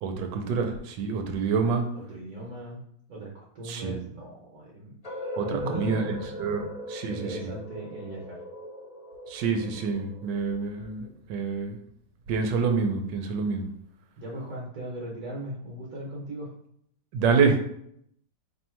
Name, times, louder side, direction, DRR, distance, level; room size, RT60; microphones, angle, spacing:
voice 1, 0.0-1.8 3.6-3.9 5.4-7.4 9.3-11.8 12.3-13.7 17.1-17.6, right 5 dB, 90° right, 6 dB, 1.2 m, -27 dB
voice 2, 1.9-2.8 3.1-4.9 5.4-6.2 7.1-8.4 14.2-16.5, right 1 dB, 65° right, -4 dB, 1.3 m, -38 dB
sound 1, 5.0-10.9, equal, 35° left, 0.6 m, -39 dB
3.0 x 2.7 x 4.3 m, 0.69 s
omnidirectional pair, 1.9 m